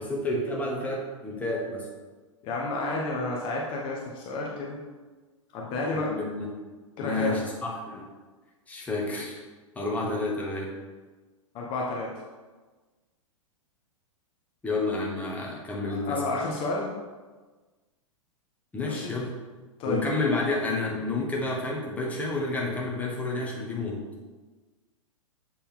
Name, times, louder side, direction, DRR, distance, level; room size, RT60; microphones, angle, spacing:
voice 1, 0.0-1.9 5.9-6.5 7.0-8.1 8.7-9.4 9.7-10.7 14.6-16.2 18.7-19.3 19.8-24.0, left 2 dB, 10° left, -3 dB, 1.1 m, -30 dB
voice 2, 2.4-4.8 5.5-6.1 7.0-7.4 11.5-12.1 15.9-16.9 18.9-19.2 19.8-20.0, left 2 dB, 30° left, -2 dB, 0.9 m, -31 dB
7.4 x 4.2 x 3.8 m, 1.3 s
figure-of-eight pair, 100°, 17 cm